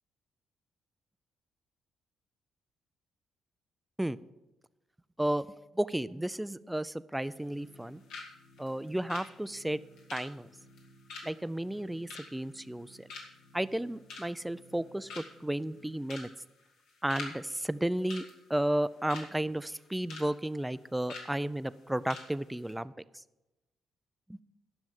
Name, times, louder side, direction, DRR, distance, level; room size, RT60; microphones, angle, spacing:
voice 1, 5.7-8.0 8.6-9.8 10.1-10.5 11.2-13.1 13.5-16.3 17.0-18.2 18.5-23.2 24.3-24.4, right 1 dB, 5° right, 16 dB, 0.4 m, -33 dB
sound 1, 7.2-7.8 8.1-8.3 8.6-12.8 13.1-13.5 13.9-14.5 14.8-14.9 15.1-15.5 16.0-16.3 16.6-17.3 17.6-17.8 18.1-19.3 19.7-20.3 20.5-20.7 21.1-21.3 21.7-21.8 22.1-22.3 22.6-22.7, left 4 dB, 90° left, 2.4 m, -44 dB
sound 2, 7.3-16.1, right 1 dB, 60° left, 1.9 m, -60 dB
11.0 x 6.2 x 7.2 m, 1.0 s
cardioid pair, 90°, 0 cm